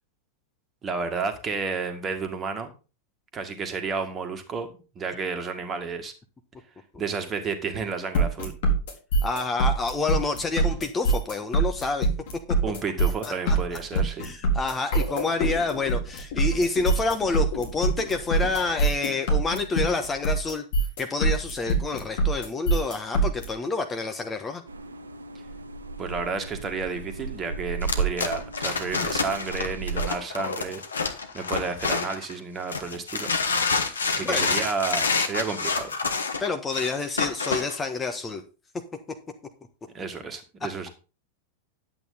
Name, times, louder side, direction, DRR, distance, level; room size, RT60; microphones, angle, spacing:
voice 1, 0.8-2.7 3.3-4.7 5.0-6.1 7.0-8.6 12.6-14.3 26.0-30.8 31.3-33.3 34.1-35.9 39.9-40.9, right 5 dB, 25° right, 7 dB, 2.0 m, -31 dB
sound 1, 8.1-23.4, right 2 dB, 55° left, 4.0 m, -24 dB
voice 2, 9.2-12.1 13.2-13.6 14.2-20.6 21.0-24.6 34.2-34.6 36.4-38.4, left 3 dB, 15° left, 6 dB, 1.3 m, -28 dB
sound 2, 24.7-30.1, right 5 dB, 75° right, 0.8 m, -34 dB
sound 3, 27.8-32.3 32.7-37.8, left 4 dB, 75° left, 1.5 m, -27 dB
11.0 x 8.6 x 4.0 m, 0.32 s
figure-of-eight pair, 90°, 0 cm